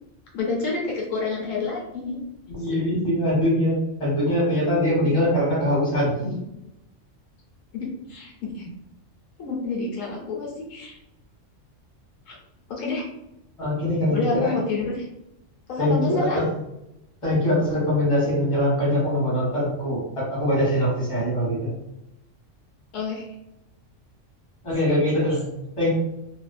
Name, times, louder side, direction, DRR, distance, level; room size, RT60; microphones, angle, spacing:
voice 1, 0.3-2.2 2.7-2.8 7.7-8.7 9.4-11.0 12.3-12.4 12.7-13.1 14.1-15.1 15.7-16.4 22.9-23.3 24.8-25.4, left 3 dB, 85° left, -3 dB, 1.1 m, -29 dB
voice 2, 2.5-6.4 13.6-14.5 15.8-16.5 17.2-21.7 24.6-25.4 25.8-25.9, left 1 dB, 25° left, -7 dB, 1.4 m, -22 dB
2.8 x 2.5 x 2.2 m, 0.87 s
omnidirectional pair, 1.3 m